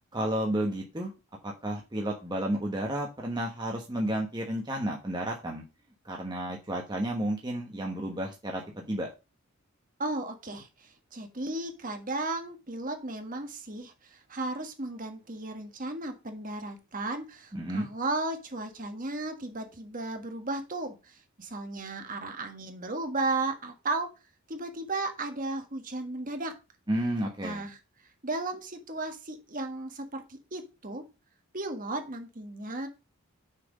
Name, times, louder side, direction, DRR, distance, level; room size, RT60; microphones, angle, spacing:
voice 1, 0.1-1.1 1.4-5.7 6.0-9.1 17.5-17.9 26.9-27.6, right 1 dB, 20° right, 0 dB, 1.2 m, -32 dB
voice 2, 10.0-24.1 24.5-26.5 27.4-27.8 28.2-31.0 31.5-32.9, right 2 dB, 40° right, 6 dB, 1.6 m, -35 dB
6.8 x 6.0 x 5.1 m, 0.28 s
head